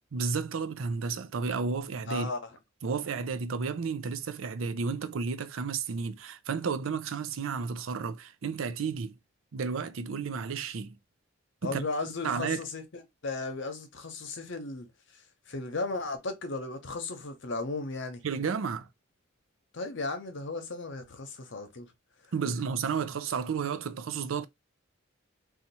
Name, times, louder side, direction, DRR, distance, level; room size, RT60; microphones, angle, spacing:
voice 1, 0.1-2.3 2.8-9.1 9.5-11.0 11.6-11.8 12.2-12.6 18.2-18.9 22.3-24.5, right 5 dB, 80° right, 0.5 m, -32 dB
voice 2, 2.1-2.5 11.6-12.8 13.2-14.9 15.1-15.2 15.5-18.2 19.7-21.9, left 3 dB, 65° left, 0.8 m, -35 dB
2.8 x 2.4 x 4.0 m
head